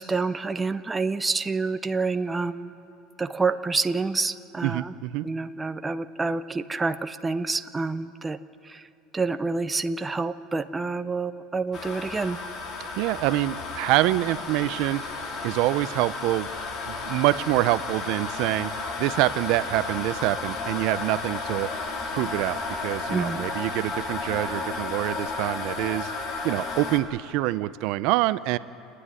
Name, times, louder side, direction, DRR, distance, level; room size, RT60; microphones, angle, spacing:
voice 1, 0.0-2.7 3.2-4.9 5.2-8.4 8.6-8.8 9.1-12.4 23.1-23.4, right 4 dB, 15° right, 10 dB, 0.5 m, -28 dB
voice 2, 4.6-5.3 13.0-15.0 15.4-16.5 16.9-21.7 22.1-26.1 26.4-28.6, right 17 dB, 65° right, 16 dB, 0.5 m, -26 dB
sound 1, 11.7-27.0, left 3 dB, 40° left, 2.2 m, -33 dB
28.5 x 9.7 x 9.7 m, 2.7 s
cardioid pair, 145°, 0 cm